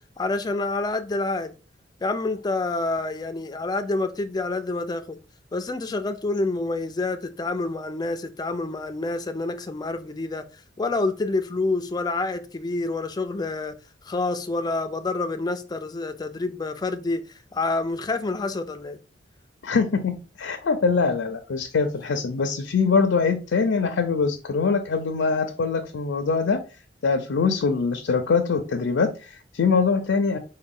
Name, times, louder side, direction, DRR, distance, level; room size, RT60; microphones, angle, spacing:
voice 1, 0.2-1.5 2.0-5.2 5.5-10.4 10.8-13.7 14.1-17.2 17.5-19.0, left 3 dB, 20° left, 0.4 m, -27 dB
voice 2, 19.6-26.6 27.0-30.4, left 4 dB, 85° left, 0.5 m, -23 dB
3.9 x 2.2 x 3.6 m
head